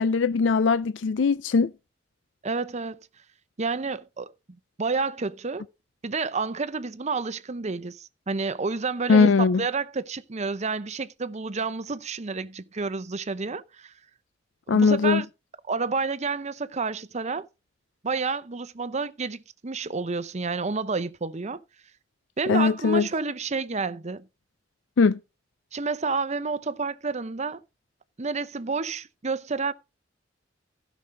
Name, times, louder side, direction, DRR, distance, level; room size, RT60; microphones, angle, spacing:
voice 1, 0.0-1.7 9.1-9.6 14.7-15.2 22.5-23.1 25.0-25.2, left 4 dB, 75° left, 0.4 m, -20 dB
voice 2, 2.4-3.0 3.6-4.3 4.8-5.6 6.0-13.9 14.7-15.3 15.7-17.5 18.0-21.6 22.4-24.3 25.7-27.6 28.2-29.7, right 4 dB, 40° right, 0.8 m, -30 dB
15.5 x 6.1 x 3.8 m
head